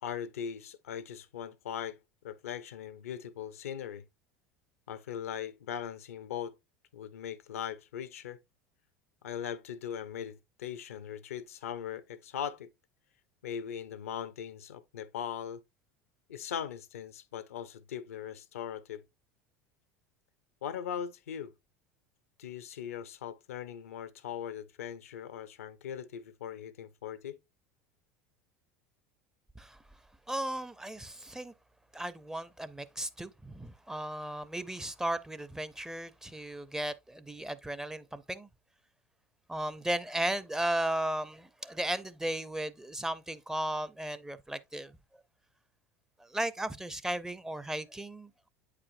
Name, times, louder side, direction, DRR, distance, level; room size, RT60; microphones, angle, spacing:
voice 1, 0.0-2.0 2.2-4.0 4.9-6.5 6.9-8.4 9.2-12.7 13.4-15.6 16.3-19.0 20.6-21.5 22.4-27.4, left 8 dB, 80° left, 0.5 m, -40 dB
voice 2, 30.3-31.5 31.9-38.5 39.5-45.0 46.2-48.5, right 1 dB, 5° right, 0.5 m, -35 dB
8.4 x 4.9 x 2.5 m
hypercardioid pair, 80°, 8 cm